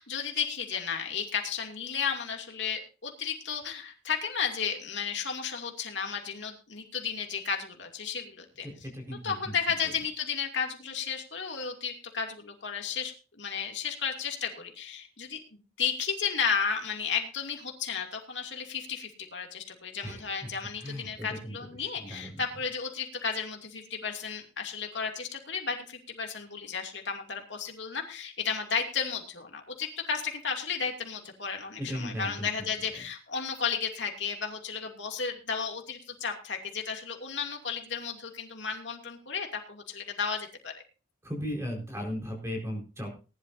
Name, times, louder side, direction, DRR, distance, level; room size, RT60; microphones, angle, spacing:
voice 1, 0.0-8.7 9.2-40.7, left 6 dB, 80° left, 2 dB, 2.6 m, -33 dB
voice 2, 8.6-9.5 20.0-20.2 20.8-21.5 21.8-22.3 31.8-32.5 41.2-43.1, equal, 15° right, 1 dB, 4.7 m, -36 dB
19.0 x 11.5 x 2.7 m, 0.33 s
head